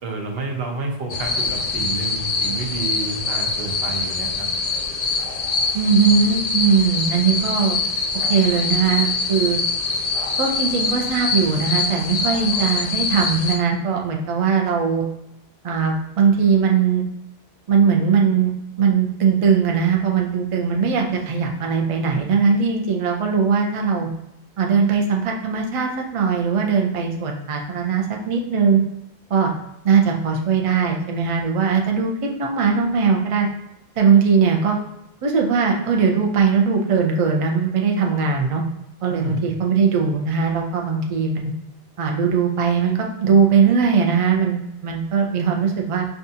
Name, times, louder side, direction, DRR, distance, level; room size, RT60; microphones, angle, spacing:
voice 1, 0.0-4.5 39.1-39.5, right 3 dB, 65° right, 1 dB, 0.9 m, -30 dB
sound 1, 1.1-13.6, left 4 dB, 60° left, 0.4 m, -24 dB
voice 2, 5.7-7.8 8.3-9.6 10.4-15.0 15.6-17.1 17.7-18.5 18.8-24.1 24.6-28.8 29.3-29.5 29.8-33.5 34.0-34.8 35.2-38.6 39.0-41.5 42.0-46.1, right 6 dB, 50° right, 1 dB, 0.4 m, -20 dB
5.4 x 2.4 x 2.6 m, 0.85 s
omnidirectional pair, 1.1 m